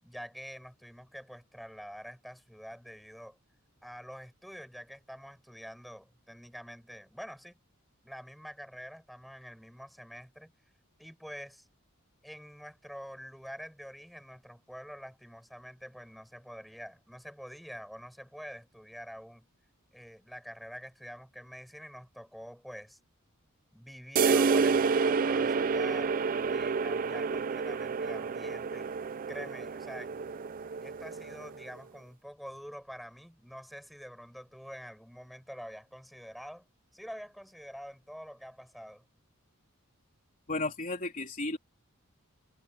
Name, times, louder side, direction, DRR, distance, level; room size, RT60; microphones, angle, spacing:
voice 1, 0.0-3.4 3.8-7.6 8.0-10.5 11.0-11.7 12.2-19.5 19.9-23.0 23.7-26.2 26.5-28.9 29.3-30.2 30.8-36.6 36.9-39.0, equal, ahead, 6.4 m, -46 dB
sound 1, 24.2-31.7, right 5 dB, 40° right, 0.4 m, -29 dB
voice 2, 40.5-41.6, left 2 dB, 40° left, 3.4 m, -33 dB
head